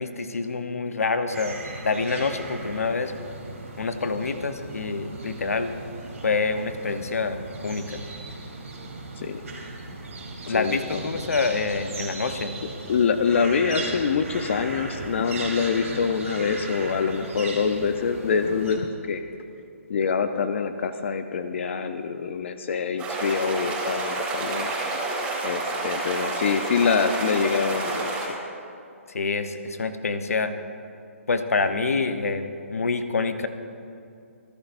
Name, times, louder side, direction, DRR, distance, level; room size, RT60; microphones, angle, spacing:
voice 1, 0.0-1.6 1.8-3.1 3.8-5.7 6.2-7.4 7.6-7.8 10.4-12.5 29.1-30.5 31.3-33.5, left 4 dB, 80° left, 9 dB, 1.0 m, -26 dB
sound 1, 1.3-18.8, right 2 dB, 85° right, 3.8 m, -37 dB
voice 2, 10.5-11.2 12.9-19.2 19.9-24.7 25.4-28.4, left 6 dB, 55° left, 9 dB, 0.7 m, -25 dB
sound 2, 23.0-28.3, right 2 dB, 15° right, 3.4 m, -29 dB
27.5 x 11.5 x 2.6 m, 2.5 s
hypercardioid pair, 145°, 8 cm